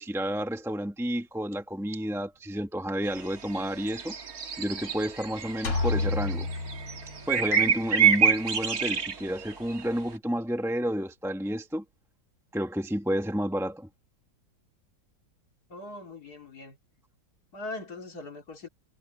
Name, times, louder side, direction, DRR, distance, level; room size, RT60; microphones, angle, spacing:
voice 1, 0.0-4.1 4.6-6.5 7.3-11.8 12.5-13.9, equal, ahead, 1.7 m, -30 dB
sound 1, 3.1-3.6 3.9-9.8, right 7 dB, 50° right, 2.2 m, -27 dB
sound 2, 5.6-7.5, left 3 dB, 70° left, 3.8 m, -30 dB
voice 2, 15.7-16.8 17.5-18.7, left 2 dB, 55° left, 3.2 m, -40 dB
omnidirectional pair, 2.0 m